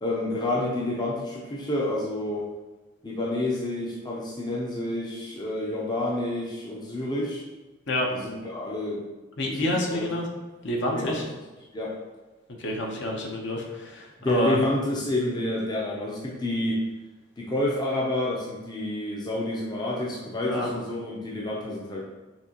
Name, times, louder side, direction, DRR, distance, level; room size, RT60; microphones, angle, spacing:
voice 1, 0.0-2.5 3.0-7.4 8.1-9.0 9.4-10.1 10.9-11.3 11.7-12.0 14.2-16.9 17.4-22.1, left 1 dB, 20° left, -3 dB, 0.5 m, -29 dB
voice 2, 9.4-10.3 10.6-11.2 12.6-14.6 20.4-20.7, left 1 dB, 60° left, 0 dB, 0.8 m, -28 dB
5.9 x 2.9 x 2.9 m, 1.2 s
head